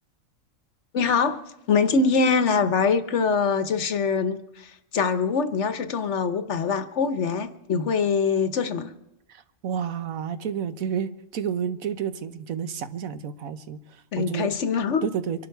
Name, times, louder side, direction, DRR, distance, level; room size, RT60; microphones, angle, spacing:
voice 1, 0.9-1.4 1.7-8.9 14.1-15.1, left 5 dB, 60° left, 1.1 m, -23 dB
voice 2, 9.3-14.5 15.0-15.5, right 8 dB, 75° right, 1.3 m, -30 dB
24.5 x 11.5 x 4.6 m
omnidirectional pair, 1.5 m